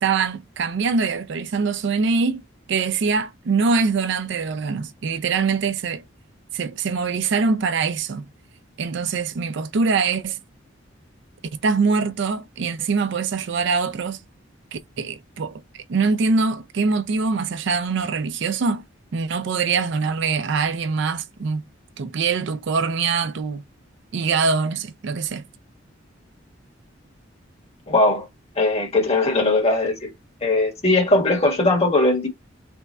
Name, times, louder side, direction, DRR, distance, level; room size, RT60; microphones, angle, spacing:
voice 1, 0.0-2.4 2.7-6.0 6.5-8.3 8.8-10.4 11.6-14.2 14.7-18.8 19.1-21.6 22.0-23.6 24.1-25.4, right 4 dB, 65° right, 0.4 m, -23 dB
voice 2, 27.9-28.3 28.6-30.1 30.4-32.3, left 2 dB, 35° left, 1.3 m, -19 dB
3.4 x 2.3 x 4.0 m
head